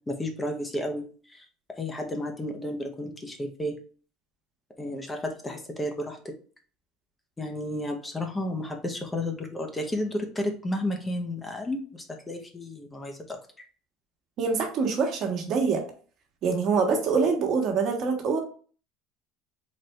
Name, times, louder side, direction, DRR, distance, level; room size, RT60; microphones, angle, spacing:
voice 1, 0.1-1.1 1.3-1.4 1.7-3.8 4.8-6.2 7.4-13.4, left 1 dB, 15° left, 4 dB, 0.8 m, -32 dB
voice 2, 14.4-15.8 16.4-18.4, right 5 dB, 55° right, 2 dB, 1.3 m, -25 dB
4.2 x 2.6 x 3.3 m, 0.41 s
supercardioid pair, 105°, 0 cm